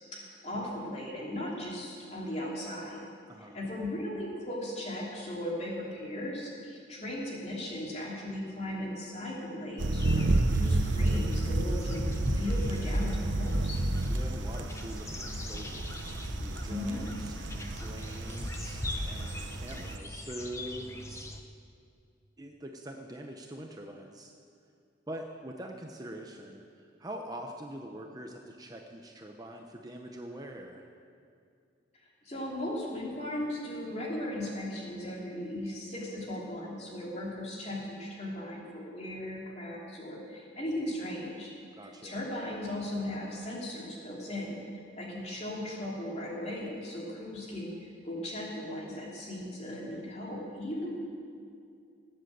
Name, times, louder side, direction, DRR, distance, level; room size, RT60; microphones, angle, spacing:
voice 1, 0.1-3.0 3.4-13.8 16.6-17.0 32.2-41.5 41.8-51.0, left 1 dB, 35° left, -3 dB, 3.1 m, -37 dB
voice 2, 3.3-3.7 14.0-16.0 16.4-17.3 17.7-21.3 22.4-24.3 25.1-30.9 41.8-42.2, right 1 dB, 20° right, 2 dB, 0.8 m, -44 dB
sound 1, 9.8-20.0, right 2 dB, 75° right, 0.8 m, -31 dB
sound 2, 9.9-21.4, left 1 dB, 15° left, 0.8 m, -38 dB
19.0 x 7.8 x 7.9 m, 2.4 s
head